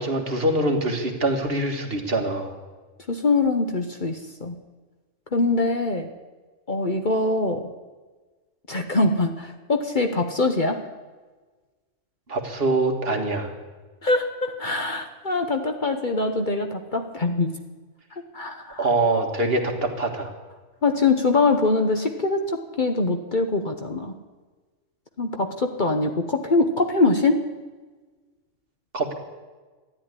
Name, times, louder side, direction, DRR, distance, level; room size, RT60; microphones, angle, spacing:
voice 1, 0.0-2.5 12.3-13.5 18.8-20.3 28.9-29.1, right 2 dB, 50° right, 3 dB, 2.0 m, -24 dB
voice 2, 3.1-4.5 5.3-6.1 6.7-7.7 8.7-10.8 14.0-17.5 18.3-18.9 20.8-24.1 25.2-27.4, left 3 dB, 40° left, 5 dB, 1.1 m, -23 dB
13.5 x 10.5 x 9.8 m, 1.3 s
omnidirectional pair, 1.3 m